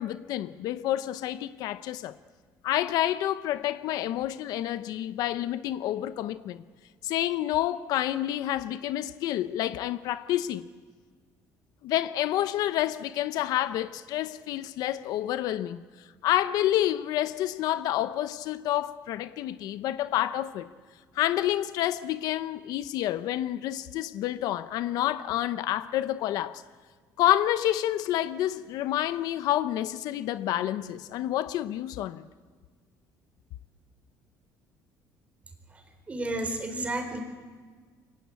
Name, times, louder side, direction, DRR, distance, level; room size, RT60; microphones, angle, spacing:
voice 1, 0.0-2.1 2.6-6.6 7.0-10.7 11.8-15.8 16.2-20.7 21.1-26.6 27.2-32.3, left 13 dB, 70° left, 0.8 m, -28 dB
voice 2, 36.1-37.2, right 2 dB, 20° right, 4.0 m, -32 dB
28.0 x 24.0 x 8.4 m
cardioid pair, 145°, 7 cm